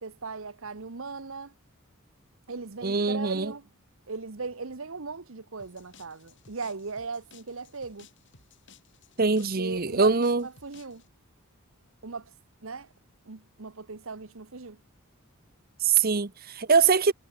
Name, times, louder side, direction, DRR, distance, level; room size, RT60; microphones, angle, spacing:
voice 1, 0.0-1.5 2.5-3.7 4.1-8.1 9.4-11.0 12.0-12.3 12.6-12.9 13.3-14.8, right 4 dB, 65° right, 1.1 m, -38 dB
voice 2, 2.8-3.5 9.2-10.5 15.8-17.1, right 5 dB, 40° right, 0.9 m, -23 dB
sound 1, 5.6-11.1, left 5 dB, 55° left, 7.2 m, -57 dB
head